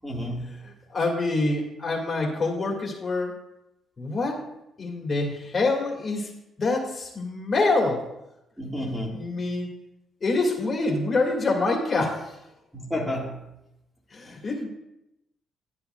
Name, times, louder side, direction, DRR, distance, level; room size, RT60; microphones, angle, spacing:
voice 1, 0.0-0.6 8.6-9.3 12.7-13.5 14.3-14.4, left 1 dB, 5° right, -2 dB, 1.7 m, -31 dB
voice 2, 0.6-3.3 4.0-4.4 4.8-6.3 6.6-8.0 9.1-9.7 10.2-12.4 14.1-14.7, left 3 dB, 35° left, 0 dB, 1.9 m, -26 dB
10.0 x 9.9 x 2.3 m, 0.88 s
cardioid pair, 90°, 0 cm